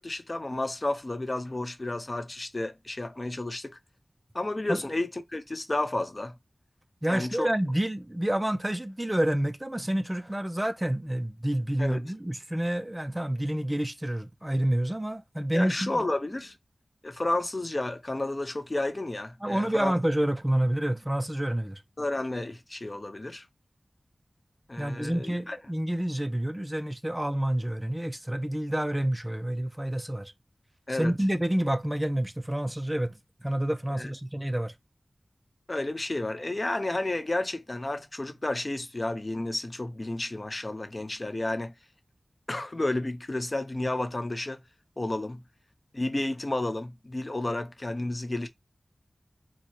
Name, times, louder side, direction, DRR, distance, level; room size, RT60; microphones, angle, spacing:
voice 1, 0.0-3.8 4.3-6.3 7.1-7.5 11.8-12.0 15.5-16.5 17.0-19.9 22.0-23.4 24.7-25.6 30.9-31.1 34.0-34.1 35.7-41.7 42.5-44.6 45.0-45.4 45.9-48.5, left 2 dB, 40° left, 1.0 m, -31 dB
voice 2, 7.0-16.0 19.4-21.8 24.8-30.3 30.9-34.7, right 1 dB, 15° right, 0.6 m, -28 dB
4.8 x 2.3 x 4.5 m
wide cardioid pair, 50°, 0 cm